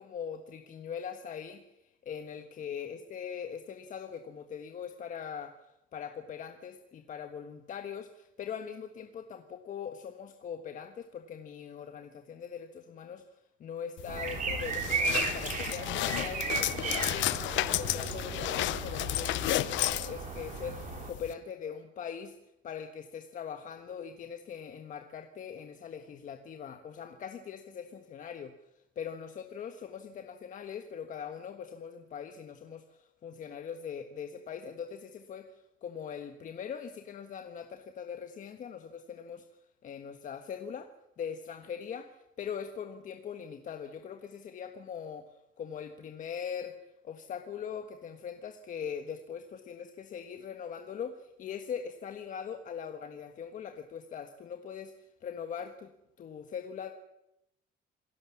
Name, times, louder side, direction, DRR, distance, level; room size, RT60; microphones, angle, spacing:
voice 1, 0.0-5.5 5.9-22.4 22.6-39.4 39.8-40.9 41.2-46.8 47.0-55.9 56.2-56.9, left 7 dB, 40° left, 6 dB, 1.5 m, -41 dB
sound 1, 14.0-21.3, left 16 dB, 70° left, 0.8 m, -33 dB
sound 2, 14.1-21.1, right 5 dB, 40° right, 3.7 m, -35 dB
27.0 x 18.0 x 7.3 m, 0.87 s
cardioid pair, 170°, 20 cm